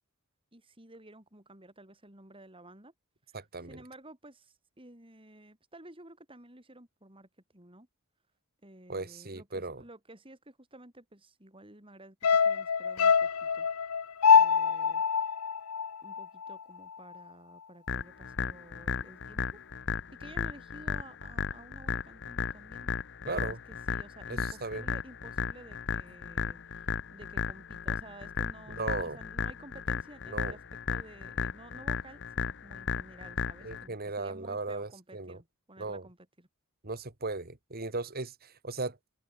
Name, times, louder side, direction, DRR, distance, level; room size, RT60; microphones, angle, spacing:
voice 1, 0.5-2.9 3.3-7.9 8.6-12.2 12.4-13.7 14.3-15.3 16.0-19.6 20.1-22.9 23.2-36.5, right 1 dB, 25° right, 5.6 m, -53 dB
voice 2, 3.3-3.8 8.9-9.8 23.3-23.6 24.3-24.9 28.8-29.2 30.3-30.6 33.6-35.4 35.8-36.1 36.8-39.0, right 3 dB, 45° right, 2.3 m, -37 dB
sound 1, 12.2-16.6 16.9-17.0, left 6 dB, 85° left, 0.9 m, -25 dB
sound 2, 17.9-33.9, left 5 dB, 55° left, 1.1 m, -35 dB
head